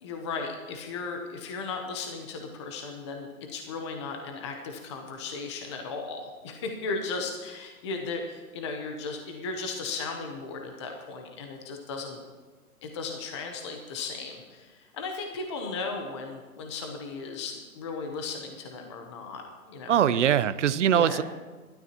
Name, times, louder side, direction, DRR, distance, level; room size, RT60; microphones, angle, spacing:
voice 1, 0.0-12.2 12.8-19.4 19.7-20.3 20.9-21.2, left 4 dB, 20° left, 3 dB, 0.8 m, -36 dB
voice 2, 19.9-21.2, right 9 dB, 55° right, 15 dB, 0.6 m, -22 dB
26.5 x 12.5 x 2.9 m, 1.4 s
hypercardioid pair, 160°, 44 cm